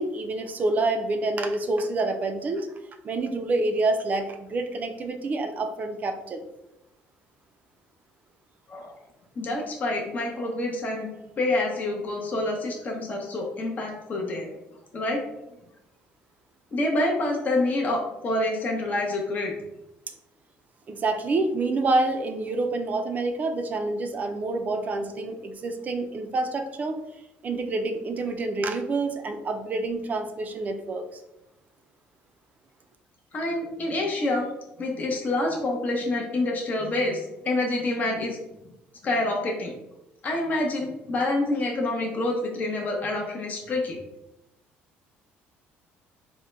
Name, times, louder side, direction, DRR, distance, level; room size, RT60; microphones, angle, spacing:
voice 1, 0.0-2.7 3.0-6.5 20.9-27.0 27.4-31.2, right 2 dB, 35° right, 6 dB, 0.4 m, -27 dB
voice 2, 9.4-11.1 11.4-14.5 14.9-15.2 16.7-19.5 33.3-34.5 34.8-38.4 39.0-39.7 40.2-44.0, left 2 dB, 40° left, 0 dB, 0.7 m, -27 dB
3.6 x 2.1 x 3.1 m, 0.89 s
cardioid pair, 105°, 4 cm